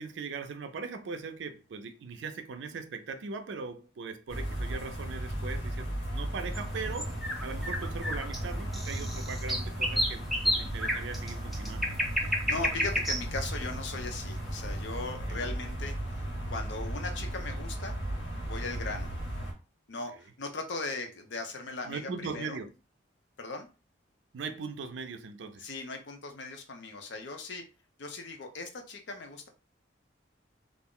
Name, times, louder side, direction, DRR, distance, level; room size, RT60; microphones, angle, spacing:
voice 1, 0.0-11.9 15.3-15.5 20.1-20.2 21.8-22.7 24.3-25.7, right 4 dB, 70° right, 0.4 m, -40 dB
sound 1, 4.3-19.5, right 1 dB, 85° left, 1.2 m, -36 dB
sound 2, 6.5-14.8, equal, ahead, 0.4 m, -32 dB
voice 2, 12.2-16.2 16.5-18.0 18.4-19.1 19.9-22.6 23.4-23.7 25.6-27.6 28.0-29.5, left 3 dB, 65° left, 0.6 m, -38 dB
2.4 x 2.0 x 3.6 m
head